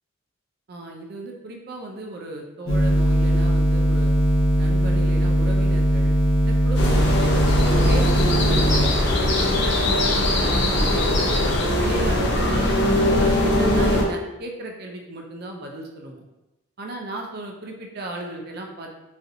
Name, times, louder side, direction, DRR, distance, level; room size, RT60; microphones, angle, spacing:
voice 1, 0.7-4.1 4.6-6.1 6.4-11.3 11.8-16.2 16.8-18.9, right 1 dB, 50° right, 1 dB, 0.5 m, -35 dB
sound 1, 2.7-8.9, right 1 dB, 75° left, 1.1 m, -19 dB
sound 2, 6.7-14.0, left 1 dB, 55° left, 0.6 m, -20 dB
4.0 x 2.5 x 2.7 m, 0.99 s
head